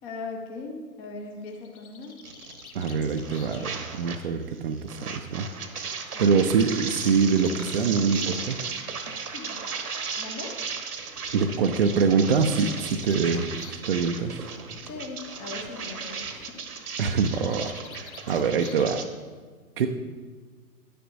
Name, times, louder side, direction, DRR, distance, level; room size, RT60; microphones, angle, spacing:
voice 1, 0.0-2.2 6.1-6.4 9.3-9.6 10.2-10.6 14.9-16.6, left 3 dB, 15° left, 1 dB, 0.6 m, -39 dB
Bird, 1.3-5.1 6.2-8.5 9.6-9.7 10.0-10.1 10.4-10.5 11.5-13.9 14.2-14.7 16.8-19.2, left 5 dB, 65° left, 1.1 m, -48 dB
sound 1, 2.2-4.2 4.5-19.0, right 5 dB, 75° right, 1.1 m, -36 dB
voice 2, 2.7-5.5 5.8-8.6 11.3-14.5 17.0-19.0 19.8-19.9, right 5 dB, 40° right, 4 dB, 0.5 m, -24 dB
10.0 x 10.0 x 2.6 m, 1.5 s
figure-of-eight pair, 120°, 46 cm